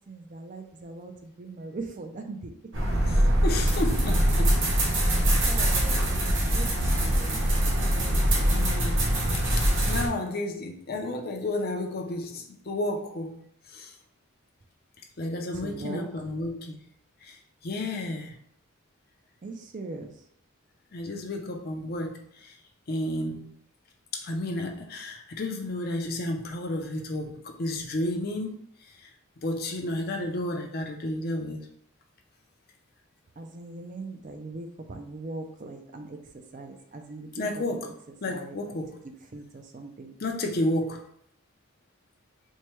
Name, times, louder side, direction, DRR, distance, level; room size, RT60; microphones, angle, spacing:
voice 1, 0.1-2.5 5.5-8.5 15.5-16.0 19.4-20.1 33.4-36.2 36.5-37.5 38.3-38.6 39.3-40.1, right 3 dB, 40° right, 5 dB, 0.4 m, -40 dB
sound 1, 2.7-10.1, right 1 dB, 60° right, 0.9 m, -23 dB
voice 2, 3.1-4.5 8.5-9.0 9.3-13.3 13.7-13.9 15.2-16.8 17.2-18.4 20.9-22.5 22.9-23.5 24.1-28.6 29.0-29.1 29.4-31.7 37.4-37.9 38.2-39.0 40.2-41.0, left 1 dB, 45° left, 3 dB, 0.5 m, -32 dB
4.4 x 2.2 x 3.0 m, 0.68 s
head